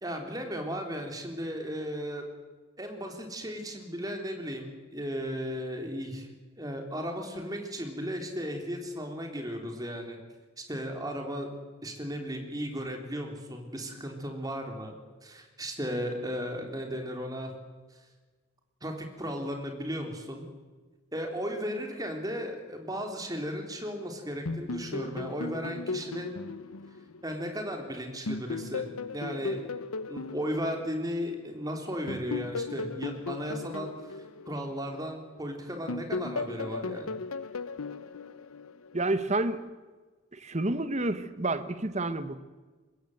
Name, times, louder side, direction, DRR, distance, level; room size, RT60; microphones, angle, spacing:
voice 1, 0.0-2.2 2.8-6.3 6.6-10.2 10.7-11.5 11.8-15.0 15.2-17.5 18.8-20.5 21.1-26.3 27.2-28.9 29.1-29.6 30.1-37.1, equal, 15° right, 4 dB, 3.6 m, -35 dB
sound 1, 24.5-27.8 28.3-31.5 32.1-35.4 35.9-39.1, left 3 dB, 90° left, 0.9 m, -37 dB
voice 2, 38.9-39.6 40.3-42.4, right 2 dB, 30° right, 12 dB, 1.2 m, -29 dB
24.5 x 20.5 x 8.0 m, 1.3 s
head